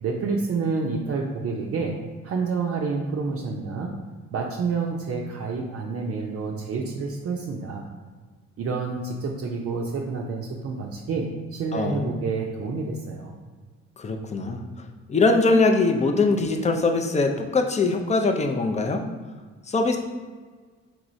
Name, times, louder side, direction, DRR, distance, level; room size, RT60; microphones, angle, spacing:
voice 1, 0.0-2.0 2.2-3.9 4.3-7.9 8.6-13.4, right 4 dB, 50° right, -1 dB, 0.5 m, -28 dB
voice 2, 11.7-12.1 14.0-14.6 15.1-19.0 19.7-20.0, left 3 dB, 25° left, 4 dB, 0.4 m, -22 dB
4.6 x 3.0 x 2.6 m, 1.5 s
cardioid pair, 90°, 30 cm